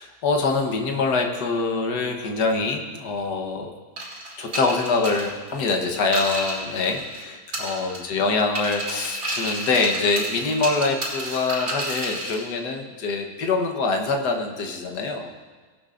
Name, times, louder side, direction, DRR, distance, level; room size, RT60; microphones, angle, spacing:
voice 1, 0.0-3.7 4.4-15.3, left 3 dB, 75° left, 2 dB, 1.7 m, -24 dB
sound 1, 4.0-7.2 7.5-8.2 8.6-12.4, right 1 dB, 70° right, 4.1 m, -31 dB
18.5 x 12.5 x 2.6 m, 1.4 s
omnidirectional pair, 1.8 m